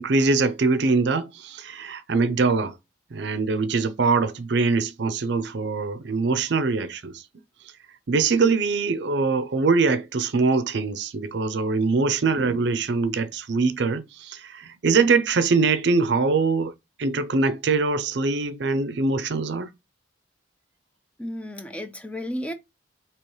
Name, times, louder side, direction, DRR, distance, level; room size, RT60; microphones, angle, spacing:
voice 1, 0.0-2.8 3.1-7.2 8.1-16.7 17.0-19.7, right 4 dB, 55° right, 0.5 m, -23 dB
voice 2, 21.2-22.5, equal, 5° left, 0.3 m, -33 dB
4.6 x 2.9 x 3.1 m
head